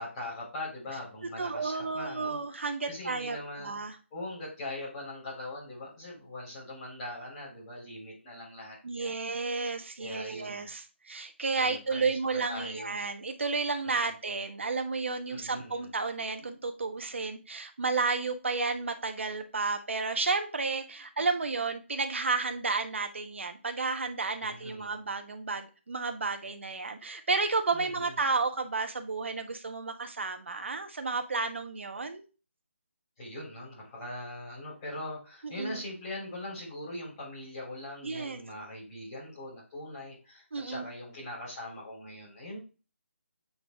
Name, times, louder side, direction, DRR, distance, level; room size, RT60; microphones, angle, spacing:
voice 1, 0.0-3.8 4.1-9.1 10.0-10.7 11.5-12.9 13.8-13.9 15.3-15.9 24.4-25.0 27.7-28.2 33.2-42.6, left 1 dB, 15° left, -7 dB, 3.6 m, -41 dB
voice 2, 1.2-4.0 8.8-32.2 35.4-35.8 38.0-38.4 40.5-40.8, right 4 dB, 65° right, 6 dB, 1.2 m, -32 dB
8.2 x 4.0 x 3.5 m, 0.33 s
hypercardioid pair, 175°, 7 cm